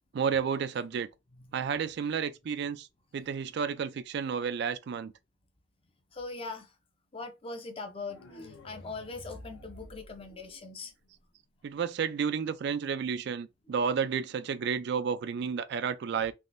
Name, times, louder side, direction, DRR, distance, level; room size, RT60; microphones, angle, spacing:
voice 1, 0.1-1.1 1.5-2.9 3.1-5.1 11.6-16.3, right 6 dB, 60° right, 0.3 m, -31 dB
voice 2, 6.1-6.7 7.1-10.9, left 3 dB, 30° left, 0.6 m, -41 dB
sound 1, 8.0-11.0, left 1 dB, 65° left, 0.8 m, -50 dB
3.5 x 2.4 x 2.5 m
head